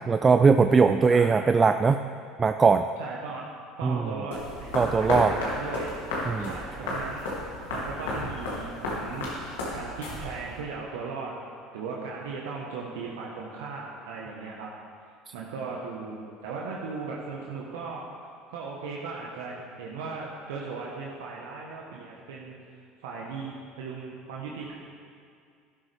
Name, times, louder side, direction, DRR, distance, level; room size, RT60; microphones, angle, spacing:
voice 1, 0.0-2.0 2.4-2.8 3.8-4.0 4.7-5.3 6.3-6.5, right 5 dB, 25° right, 9 dB, 0.4 m, -20 dB
voice 2, 1.1-1.4 3.0-3.4 3.8-5.9 6.4-9.3 9.7-11.4 11.7-14.7 15.3-18.1 18.5-24.7, right 4 dB, 80° right, -3 dB, 1.2 m, -37 dB
sound 1, 4.3-10.6, left 1 dB, 85° left, 2.7 m, -33 dB
12.5 x 11.5 x 3.5 m, 2.3 s
hypercardioid pair, 80°, 0 cm